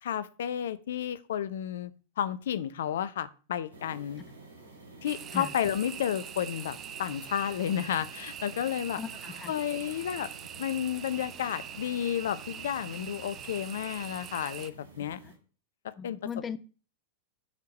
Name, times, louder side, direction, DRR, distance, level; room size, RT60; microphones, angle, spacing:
voice 1, 0.0-1.9 2.2-4.2 5.0-9.0 9.5-10.3 10.6-15.2 16.0-16.2, left 10 dB, 60° left, 0.6 m, -32 dB
sound 1, 3.7-15.4, right 2 dB, 75° right, 3.5 m, -51 dB
sound 2, 5.1-14.7, right 9 dB, 30° right, 0.6 m, -43 dB
voice 2, 8.9-9.5 15.0-15.3 16.0-16.6, left 7 dB, 20° left, 0.5 m, -38 dB
9.5 x 4.6 x 5.3 m
figure-of-eight pair, 90°, 0 cm